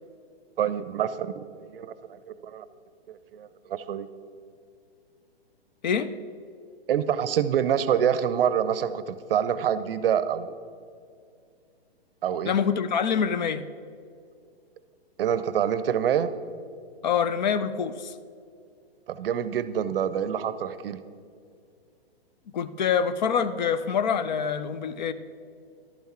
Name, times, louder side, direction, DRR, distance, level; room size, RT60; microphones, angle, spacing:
voice 1, 0.6-2.7 3.1-4.1 6.9-10.5 12.2-12.5 15.2-16.3 19.1-21.0, right 9 dB, 65° right, 14 dB, 0.6 m, -26 dB
voice 2, 12.5-13.6 17.0-18.1 22.5-25.1, left 7 dB, 45° left, 13 dB, 0.4 m, -25 dB
11.5 x 5.9 x 4.3 m, 2.3 s
hypercardioid pair, 155°, 31 cm